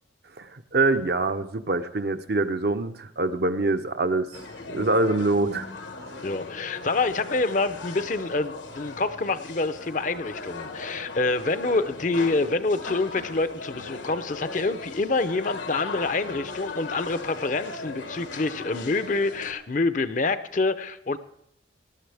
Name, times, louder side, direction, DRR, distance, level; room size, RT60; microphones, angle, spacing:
voice 1, 0.4-4.3 4.7-5.6, right 2 dB, 55° right, 8 dB, 0.7 m, -24 dB
sound 1, 4.3-19.5, left 3 dB, 80° left, 1.4 m, -38 dB
voice 2, 6.2-21.2, left 3 dB, 45° left, 12 dB, 0.6 m, -27 dB
19.0 x 12.0 x 3.4 m, 0.75 s
head